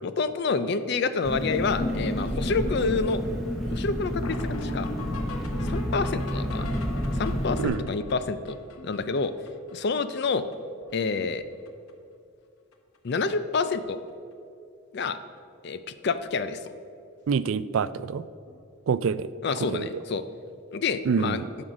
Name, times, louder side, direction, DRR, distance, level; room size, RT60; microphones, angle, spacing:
voice 1, 0.0-3.2 3.7-4.9 5.6-6.7 7.1-8.6 8.8-9.3 9.7-10.5 10.9-11.4 13.0-14.0 14.9-15.2 15.6-16.7 19.4-20.2 20.7-21.4, left 4 dB, 50° left, 12 dB, 0.4 m, -28 dB
Engine, 1.2-7.7, equal, ahead, 1.8 m, -30 dB
sound 1, 1.5-9.7 10.0-10.1 10.3-10.5 10.8-11.4 11.7-11.9 12.7-12.8 13.2-13.3 13.6-13.8 16.0-16.1 18.5-18.6, left 1 dB, 80° left, 1.0 m, -39 dB
voice 2, 17.3-18.2 18.9-19.3 19.7-19.9 21.1-21.5, right 6 dB, 65° right, 16 dB, 0.3 m, -26 dB
11.0 x 6.3 x 5.0 m, 2.5 s
head